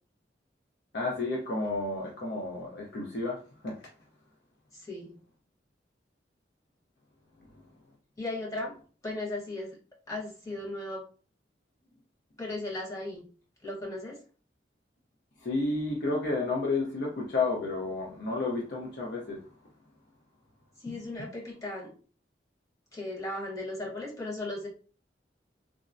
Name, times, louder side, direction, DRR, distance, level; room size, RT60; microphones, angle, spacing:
voice 1, 0.9-3.8 15.4-19.4, left 3 dB, 65° left, 0.6 m, -31 dB
voice 2, 4.7-5.2 8.2-8.7 9.0-9.8 10.1-11.0 12.4-13.2 13.6-14.2 20.8-21.9 22.9-24.7, left 2 dB, 20° left, 1.1 m, -36 dB
3.5 x 2.0 x 2.5 m
head